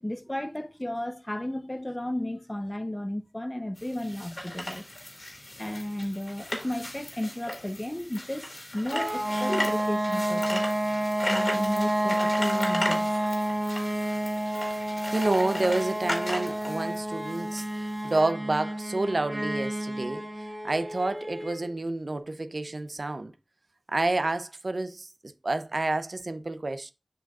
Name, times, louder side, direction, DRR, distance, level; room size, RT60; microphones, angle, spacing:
voice 1, 0.0-4.9 5.6-10.6 11.2-13.2, left 1 dB, 30° left, 0.7 m, -33 dB
sound 1, 3.8-18.2, left 1 dB, 55° left, 2.1 m, -36 dB
sound 2, 8.9-21.7, right 1 dB, 30° right, 2.0 m, -30 dB
voice 2, 15.1-23.3 23.9-25.1 25.4-26.9, right 2 dB, 80° right, 0.5 m, -29 dB
7.3 x 5.8 x 2.4 m
wide cardioid pair, 45°, 0 cm